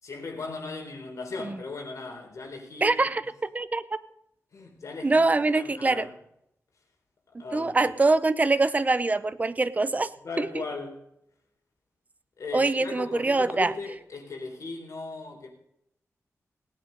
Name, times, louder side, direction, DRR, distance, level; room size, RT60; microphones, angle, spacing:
voice 1, 0.0-3.1 4.5-6.2 7.4-8.0 10.2-11.0 12.4-15.5, left 3 dB, 70° left, 3.7 m, -38 dB
voice 2, 2.8-3.8 5.0-6.1 7.3-10.1 10.4-10.5 12.5-13.7, right 3 dB, 30° right, 0.7 m, -24 dB
18.0 x 9.3 x 5.2 m
wide cardioid pair, 110°, 6 cm